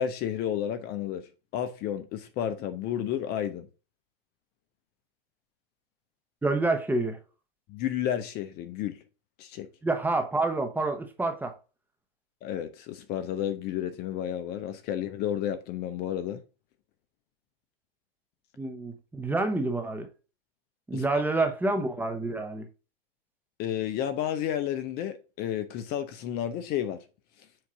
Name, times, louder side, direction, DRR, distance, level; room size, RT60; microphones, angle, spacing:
voice 1, 0.0-3.7 7.7-9.0 9.4-9.7 12.4-16.4 20.9-21.5 23.6-27.0, left 10 dB, 35° left, 0.7 m, -32 dB
voice 2, 6.4-7.2 9.8-11.5 18.6-20.1 20.9-22.7, right 2 dB, 5° right, 0.9 m, -28 dB
7.6 x 2.7 x 5.7 m
hypercardioid pair, 120°, 29 cm